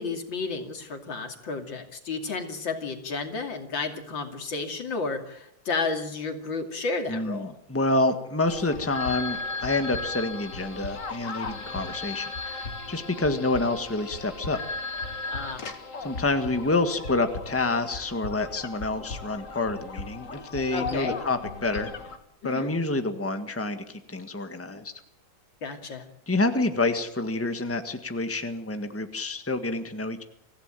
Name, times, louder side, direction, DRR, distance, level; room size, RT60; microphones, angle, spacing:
voice 1, 0.0-7.6 15.3-15.6 20.7-21.2 22.4-22.7 25.6-26.0, left 4 dB, 85° left, 5 dB, 3.3 m, -32 dB
voice 2, 7.1-14.6 16.0-21.9 22.4-24.9 26.3-30.2, left 2 dB, 10° left, 7 dB, 1.6 m, -28 dB
sound 1, 8.5-22.2, left 3 dB, 45° left, 2.1 m, -36 dB
25.0 x 15.5 x 9.1 m, 0.80 s
omnidirectional pair, 2.0 m